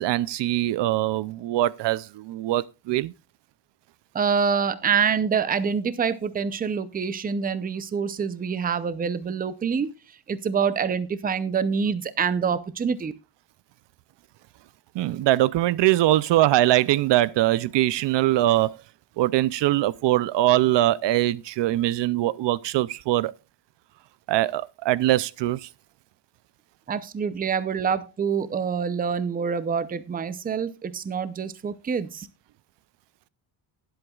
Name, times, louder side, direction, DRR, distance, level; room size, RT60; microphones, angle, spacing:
voice 1, 0.0-3.1 14.9-18.7 19.2-23.3 24.3-25.7, right 15 dB, 65° right, 0.5 m, -22 dB
voice 2, 4.1-9.9 10.3-13.1 26.9-32.3, right 6 dB, 20° right, 0.5 m, -26 dB
19.5 x 7.9 x 2.3 m
cardioid pair, 160°, 46 cm